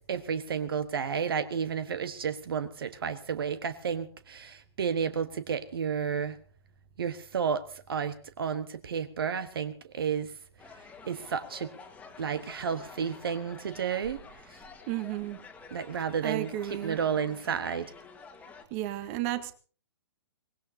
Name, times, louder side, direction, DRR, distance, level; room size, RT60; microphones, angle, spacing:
voice 1, 0.1-6.4 7.0-10.3 11.0-11.7 12.2-14.2 15.7-16.5 16.8-17.9, right 7 dB, 55° right, 1.3 m, -31 dB
sound 1, 10.6-18.6, left 5 dB, 10° left, 1.8 m, -50 dB
voice 2, 14.9-15.4 16.2-17.0 18.7-19.5, right 14 dB, 30° right, 1.4 m, -33 dB
23.5 x 19.5 x 2.8 m
figure-of-eight pair, 120°, 15 cm